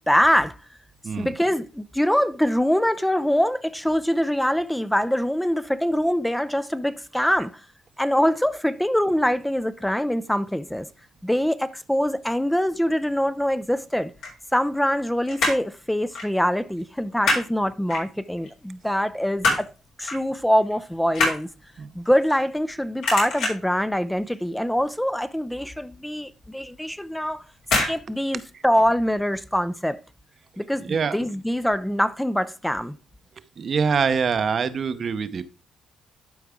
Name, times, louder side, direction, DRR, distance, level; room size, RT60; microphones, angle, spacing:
voice 1, 0.1-0.5 1.2-7.5 8.0-10.9 11.2-14.1 14.5-19.7 20.0-21.5 22.0-27.4 27.9-30.0 30.6-32.9, equal, 5° left, 0.4 m, -24 dB
sound 1, 14.1-15.0 15.3-15.7 16.1-16.3 16.6-17.5 17.9-18.5 18.9-19.7 20.1-20.3 20.6-22.7 23.0-23.8 24.2-24.5 24.8-24.9 25.2-25.3 25.8-25.9 26.7-27.0 27.6-28.0 28.2-28.3, left 2 dB, 85° left, 4.6 m, -25 dB
voice 2, 33.6-35.4, right 6 dB, 50° right, 0.7 m, -24 dB
12.0 x 4.6 x 3.6 m
cardioid pair, 90°, 0 cm